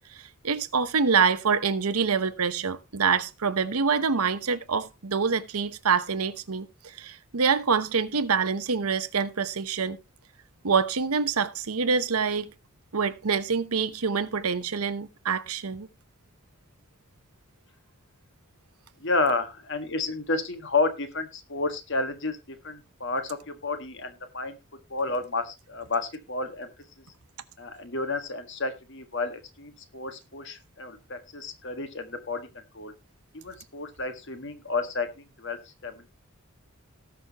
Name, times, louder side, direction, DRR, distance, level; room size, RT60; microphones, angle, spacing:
voice 1, 0.2-10.0 10.6-12.5 12.9-15.9, right 5 dB, 85° right, 0.9 m, -26 dB
voice 2, 19.0-24.6 24.9-26.7 27.6-32.5 32.7-32.9 33.3-35.1 35.4-36.1, left 3 dB, 55° left, 1.7 m, -31 dB
18.5 x 6.3 x 3.0 m
head